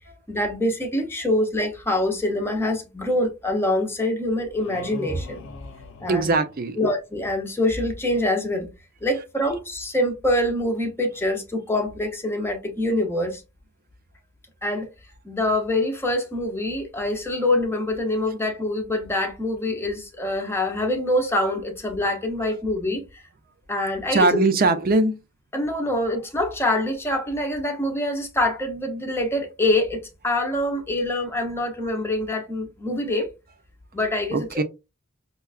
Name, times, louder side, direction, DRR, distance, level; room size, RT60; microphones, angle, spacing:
voice 1, 0.3-5.4 6.0-6.3 6.8-8.7 9.0-13.4 14.6-14.9 15.2-23.2 23.7-24.3 25.5-33.3 33.9-34.6, left 1 dB, 10° left, 0.7 m, -25 dB
sound 1, 4.6-7.1, left 3 dB, 65° left, 0.5 m, -42 dB
voice 2, 6.1-6.8 24.1-25.1 34.3-34.6, right 3 dB, 45° right, 0.5 m, -20 dB
5.4 x 2.3 x 2.3 m
head